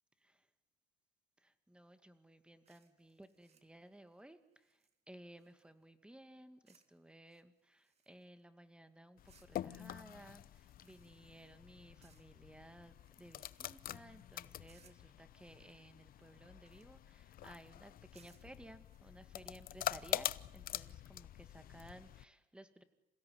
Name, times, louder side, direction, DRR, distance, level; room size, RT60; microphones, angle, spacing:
voice 1, 1.4-4.8 5.1-22.8, right 1 dB, 5° right, 10 dB, 2.2 m, -58 dB
sound 1, 2.7-5.9 6.7-7.0 7.3-8.4 9.2-11.6 12.0-12.5 12.9-14.0 14.7-15.2 15.9-17.1 18.1-19.7, right 6 dB, 40° right, 2.6 m, -72 dB
sound 2, 9.2-22.2, left 12 dB, 60° left, 0.8 m, -46 dB
27.5 x 16.5 x 9.7 m, 0.96 s
cardioid pair, 110°, 17 cm